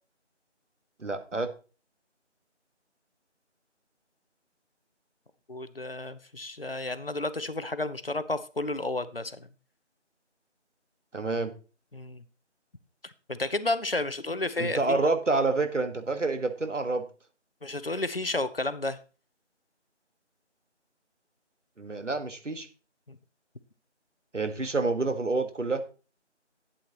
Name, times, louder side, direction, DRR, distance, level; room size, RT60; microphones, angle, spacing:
voice 1, 1.0-1.5 11.1-11.5 14.6-17.0 21.8-22.7 24.3-25.8, right 3 dB, 85° right, 8 dB, 1.6 m, -28 dB
voice 2, 5.5-9.5 11.9-12.2 13.0-15.0 17.6-19.0 23.1-23.2, left 2 dB, 55° left, 14 dB, 0.7 m, -32 dB
11.5 x 8.5 x 3.0 m, 0.34 s
figure-of-eight pair, 175°, 36 cm